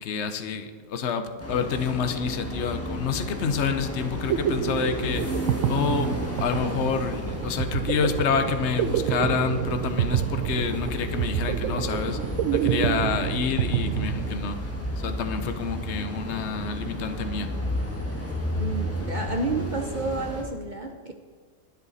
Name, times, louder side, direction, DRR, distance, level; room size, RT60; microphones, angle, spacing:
voice 1, 0.0-5.4 5.7-6.1 6.4-12.2 12.5-14.6 15.0-17.5, left 6 dB, 55° left, 8 dB, 1.1 m, -28 dB
sound 1, 1.4-20.4, equal, 10° left, 1.7 m, -32 dB
sound 2, 4.0-14.8, right 11 dB, 75° right, 0.9 m, -28 dB
voice 2, 18.6-21.1, right 3 dB, 40° right, 4 dB, 0.9 m, -30 dB
21.5 x 8.2 x 4.2 m, 1.5 s
omnidirectional pair, 1.4 m